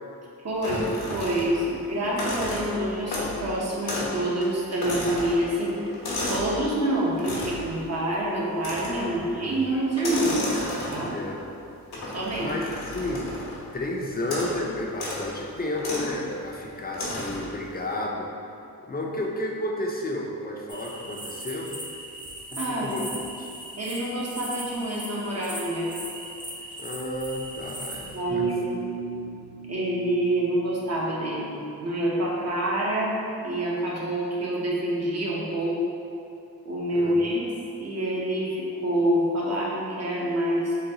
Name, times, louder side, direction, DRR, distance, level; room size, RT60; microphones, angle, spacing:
voice 1, 0.4-5.8 6.3-11.2 12.1-12.6 22.5-23.0 23.8-26.0 28.1-28.8 29.7-31.5 31.8-35.8 36.6-37.5 37.8-40.8, right 1 dB, 45° right, -4 dB, 0.8 m, -27 dB
sound 1, 0.6-1.7 2.0-3.4 3.8-4.2 4.4-6.6 7.2-7.7 8.6-9.1 9.9-11.2 11.9-13.6 14.2-14.6 14.9-15.2 15.8-16.1 16.9-17.5, left 2 dB, 75° left, 0.9 m, -32 dB
voice 2, 9.0-9.6 11.1-11.4 12.4-13.3 13.7-18.3 18.9-21.8 22.5-23.1 23.4-23.5 26.8-28.5 36.9-37.1, left 1 dB, 25° left, -1 dB, 0.5 m, -32 dB
sound 2, 20.7-28.2, right 1 dB, 10° right, 0.7 m, -38 dB
sound 3, 28.3-31.4, right 2 dB, 80° right, 1.5 m, -38 dB
3.8 x 2.2 x 2.8 m, 2.6 s
cardioid pair, 45°, 38 cm